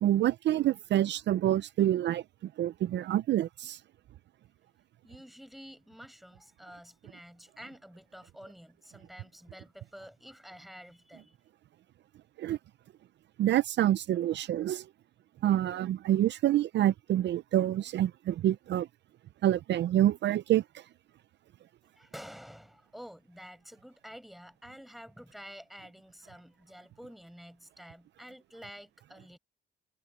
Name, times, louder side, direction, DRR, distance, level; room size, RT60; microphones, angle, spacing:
voice 1, 0.0-3.8 12.4-12.6 13.4-14.9 15.4-18.9 19.4-20.8, right 12 dB, 65° right, 0.5 m, -27 dB
voice 2, 5.0-11.4 21.9-29.4, equal, ahead, 6.8 m, -49 dB
cardioid pair, 90°, 20 cm